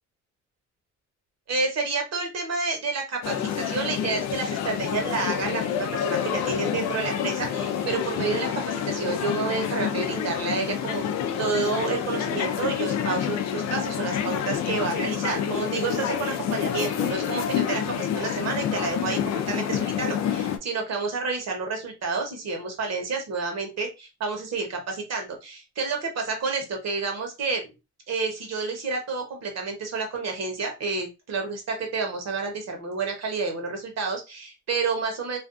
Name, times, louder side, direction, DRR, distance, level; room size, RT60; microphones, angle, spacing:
voice 1, 1.5-11.0 11.4-27.7 28.1-35.4, right 4 dB, 60° right, 3 dB, 1.0 m, -29 dB
sound 1, 3.2-20.6, left 9 dB, 60° left, 0.4 m, -28 dB
2.5 x 2.3 x 2.4 m, 0.26 s
cardioid pair, 90°, 30 cm